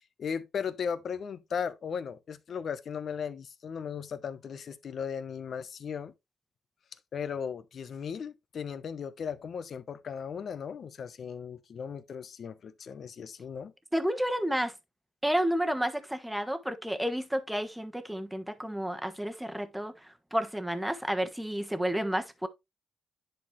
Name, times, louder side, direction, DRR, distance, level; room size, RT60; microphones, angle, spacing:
voice 1, 0.0-6.1 7.1-13.7, left 7 dB, 55° left, 0.9 m, -37 dB
voice 2, 13.9-14.7 15.2-22.5, equal, 5° right, 1.3 m, -31 dB
10.5 x 4.4 x 3.2 m
cardioid pair, 100°, 0 cm